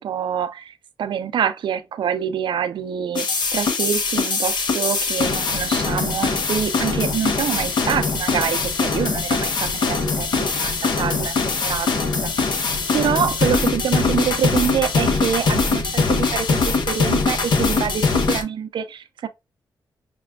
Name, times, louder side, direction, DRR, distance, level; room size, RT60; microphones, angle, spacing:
voice 1, 0.0-12.3 12.6-19.3, right 8 dB, 80° right, 0.5 m, -26 dB
sound 1, 3.2-18.4, left 4 dB, 70° left, 0.9 m, -22 dB
5.9 x 2.3 x 2.3 m
cardioid pair, 75°, 8 cm